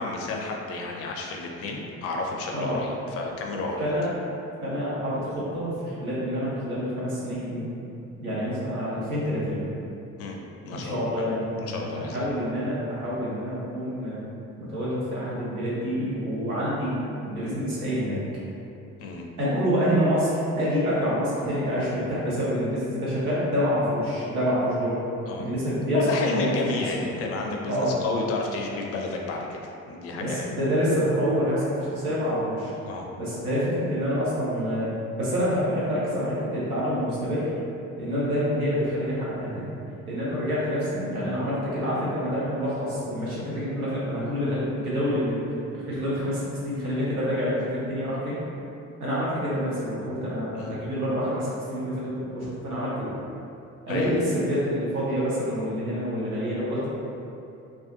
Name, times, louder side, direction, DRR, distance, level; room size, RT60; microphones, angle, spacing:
voice 1, 0.0-3.9 10.2-10.4 10.6-11.3 11.6-12.3 19.0-19.3 25.3-25.5 25.9-30.5 32.8-33.1 50.5-50.7 53.9-54.1, left 3 dB, 35° left, 0 dB, 0.4 m, -31 dB
voice 2, 2.5-2.8 3.8-4.1 4.6-7.8 8.2-9.6 10.7-14.2 14.6-18.2 19.4-25.1 25.4-26.5 27.6-28.0 30.1-32.7 33.2-34.9 35.2-37.5 38.0-39.6 40.0-45.4 45.7-48.4 49.0-53.1 53.9-56.9, equal, 90° right, -9 dB, 0.7 m, -27 dB
2.4 x 2.2 x 2.4 m, 2.7 s
figure-of-eight pair, 50°, 42 cm